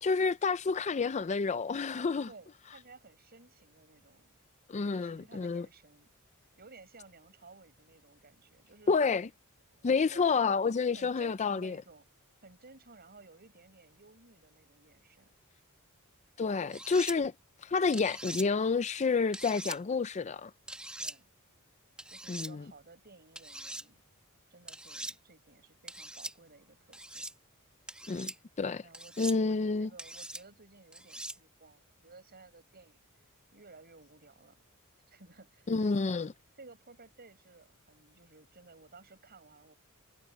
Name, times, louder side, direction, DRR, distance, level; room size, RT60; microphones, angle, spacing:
voice 1, 0.0-2.3 4.7-5.7 8.9-9.3 9.8-11.8 16.4-17.3 17.6-20.5 22.3-22.6 28.1-28.3 28.6-28.8 29.2-29.9 35.7-36.3, left 4 dB, 30° left, 0.4 m, -29 dB
voice 2, 2.2-4.3 4.8-6.1 6.6-8.9 9.7-10.6 10.9-12.0 12.4-15.3 21.0-21.3 22.1-24.0 24.5-27.3 28.8-33.1 33.5-34.6 35.1-39.7, right 3 dB, 45° right, 6.8 m, -56 dB
sound 1, 16.7-17.2 17.9-18.5 19.3-19.8 20.7-21.2 22.0-22.5 23.4-23.8 24.7-25.1 25.9-26.3 26.9-27.3 27.9-28.4 28.9-29.4 30.0-30.4 30.9-31.4, right 1 dB, 5° right, 1.7 m, -42 dB
head